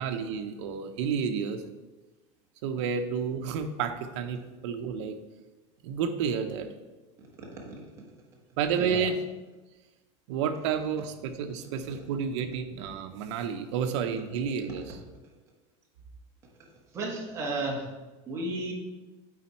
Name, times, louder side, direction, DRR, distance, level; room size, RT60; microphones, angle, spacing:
voice 1, 0.0-1.6 2.6-5.2 5.8-6.7 8.6-9.2 10.3-15.0, right 6 dB, 70° right, 7 dB, 0.8 m, -30 dB
voice 2, 8.7-9.1 16.6-16.7 16.9-17.9 18.3-18.7, right 2 dB, 20° right, -3 dB, 1.3 m, -33 dB
8.6 x 4.2 x 4.3 m, 1.2 s
supercardioid pair, 175°, 16 cm